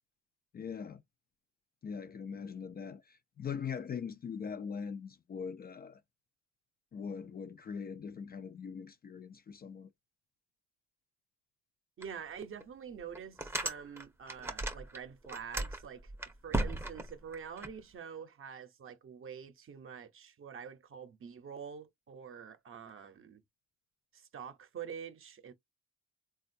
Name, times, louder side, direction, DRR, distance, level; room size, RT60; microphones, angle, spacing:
voice 1, 0.5-1.0 1.8-6.0 6.9-9.9, left 6 dB, 30° left, 0.4 m, -41 dB
sound 1, 12.0-12.1 12.6-12.7 13.1-15.0 15.2-17.7, right 1 dB, 10° right, 0.6 m, -36 dB
voice 2, 12.0-16.1 16.4-23.4 24.1-25.5, right 7 dB, 45° right, 0.7 m, -46 dB
3.6 x 2.3 x 2.6 m
cardioid pair, 90°, 30 cm